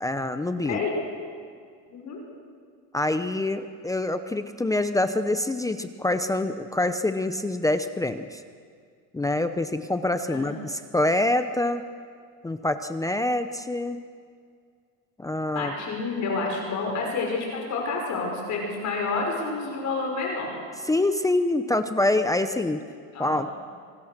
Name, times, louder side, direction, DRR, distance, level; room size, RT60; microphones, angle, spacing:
voice 1, 0.0-0.8 2.9-8.4 9.1-11.8 12.4-14.0 15.2-15.7 20.8-22.8 23.2-23.5, left 2 dB, 10° left, 9 dB, 0.7 m, -25 dB
voice 2, 0.6-0.9 1.9-2.2 10.3-10.6 15.5-20.6 23.1-23.4, left 3 dB, 40° left, 0 dB, 6.0 m, -29 dB
26.0 x 24.0 x 6.7 m, 2.1 s
cardioid pair, 140°, 43 cm